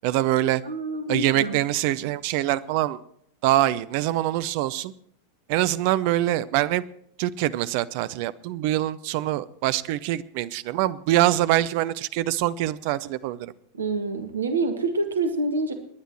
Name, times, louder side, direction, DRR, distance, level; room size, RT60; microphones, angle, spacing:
voice 1, 0.0-0.6 1.1-3.0 3.4-4.9 5.5-6.8 7.2-13.5, right 14 dB, 45° right, 17 dB, 0.6 m, -24 dB
voice 2, 0.6-1.6 13.7-15.7, right 3 dB, 70° right, 8 dB, 1.5 m, -27 dB
29.0 x 10.0 x 3.1 m, 0.69 s
figure-of-eight pair, 90°, 0 cm